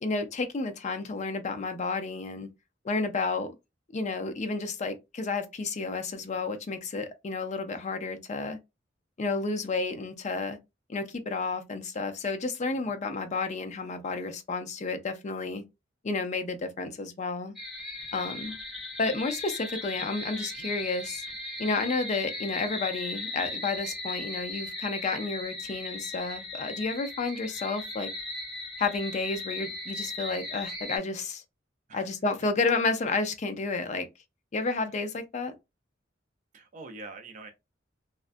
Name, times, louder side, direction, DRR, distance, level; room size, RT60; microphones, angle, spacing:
voice 1, 0.0-2.5 2.8-3.5 3.9-8.6 9.2-10.6 10.9-15.6 16.0-17.5 18.1-18.5 19.0-21.2 21.6-28.1 28.8-31.4 31.9-34.1 34.5-35.5, left 3 dB, 40° left, 0.4 m, -31 dB
sound 1, 17.6-31.0, left 2 dB, ahead, 0.7 m, -38 dB
voice 2, 36.5-37.5, right 3 dB, 40° right, 0.4 m, -45 dB
2.4 x 2.1 x 2.5 m
head